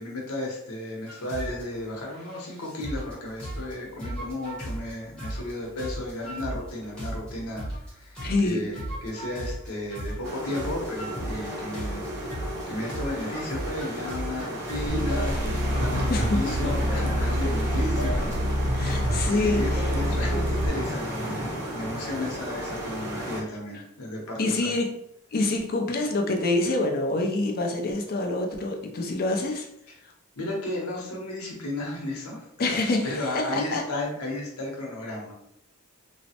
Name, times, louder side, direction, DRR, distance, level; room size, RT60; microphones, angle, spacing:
voice 1, 0.0-8.2 8.4-18.5 19.3-24.7 30.3-32.5 33.0-35.3, left 1 dB, 80° left, -1 dB, 0.8 m, -34 dB
sound 1, 1.1-1.6 2.1-3.1 3.4-3.7 4.0-4.9 5.2-5.5 5.8-7.9 8.1-12.6 12.9-15.0 15.3-17.4 18.0-18.6, right 1 dB, 5° left, 0.8 m, -36 dB
voice 2, 8.2-8.6 16.1-16.7 18.7-19.7 24.4-24.9 25.3-29.7 32.6-33.8, left 2 dB, 45° left, 2 dB, 0.4 m, -26 dB
sound 2, 10.2-23.4, right 1 dB, 85° right, 0.8 m, -34 dB
sound 3, 14.9-20.7, equal, 45° right, 0.4 m, -26 dB
3.1 x 2.0 x 2.8 m, 0.76 s
head